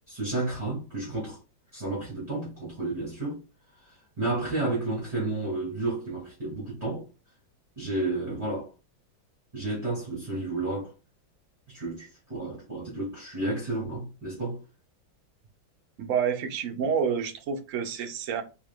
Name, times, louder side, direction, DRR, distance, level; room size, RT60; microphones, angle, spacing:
voice 1, 0.1-1.4 1.7-3.4 3.8-7.0 7.8-8.7 9.5-10.9 11.7-14.6, right 2 dB, 20° right, 2.3 m, -31 dB
voice 2, 16.0-18.4, right 7 dB, 55° right, 0.9 m, -28 dB
4.7 x 3.7 x 2.4 m
omnidirectional pair, 2.2 m